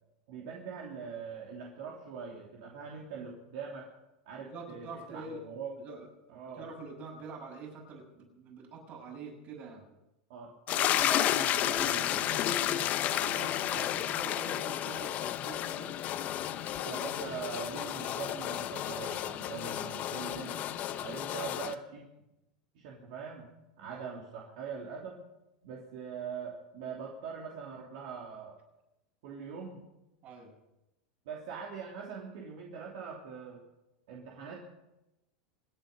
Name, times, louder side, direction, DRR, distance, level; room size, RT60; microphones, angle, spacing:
voice 1, 0.3-3.9 4.2-5.7 6.3-6.6 10.3-12.8 13.7-13.9 16.8-20.6 21.0-22.0 22.7-23.5 23.8-25.1 25.6-28.5 29.2-29.9 31.2-33.6 34.1-34.6, right 6 dB, 70° right, -2 dB, 3.2 m, -42 dB
voice 2, 4.4-5.4 5.8-6.1 6.5-9.8 12.6-12.8 13.1-16.0 23.9-24.1 30.2-30.5, right 4 dB, 45° right, 0 dB, 7.0 m, -45 dB
sound 1, 10.7-21.7, left 12 dB, 40° left, 0.9 m, -32 dB
27.0 x 9.5 x 5.5 m, 0.94 s
supercardioid pair, 120°, 4 cm